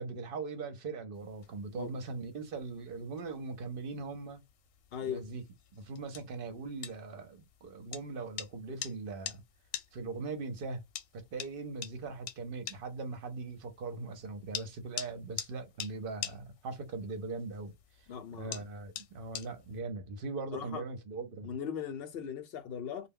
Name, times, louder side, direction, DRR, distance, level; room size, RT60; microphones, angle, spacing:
voice 1, 0.0-4.4 5.1-5.4 5.7-9.4 9.9-10.8 11.1-17.7 18.0-18.1 18.4-21.5, right 3 dB, 55° right, 0.8 m, -40 dB
sound 1, 1.1-19.8, left 10 dB, 85° left, 1.0 m, -47 dB
voice 2, 4.9-5.3 18.1-18.7 20.5-20.8 21.4-23.1, left 8 dB, 65° left, 0.7 m, -39 dB
2.2 x 2.1 x 3.4 m
omnidirectional pair, 1.3 m